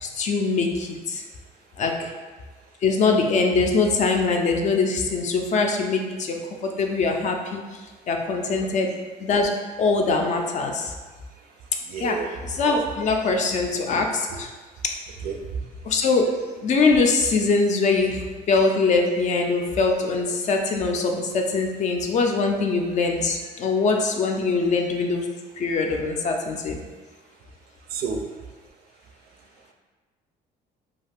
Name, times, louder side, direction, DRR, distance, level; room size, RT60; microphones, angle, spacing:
voice 1, 0.0-1.2 1.8-2.1 2.8-8.9 9.2-9.5 9.8-10.9 12.0-14.5 14.8-15.0 15.6-16.3 16.6-25.3 25.6-26.8, left 4 dB, 45° left, 3 dB, 0.4 m, -23 dB
voice 2, 11.9-12.3 12.7-12.8 15.2-15.3 27.9-28.3, right 5 dB, 65° right, 4 dB, 0.4 m, -29 dB
2.4 x 2.4 x 3.3 m, 1.3 s
cardioid pair, 110°, 17 cm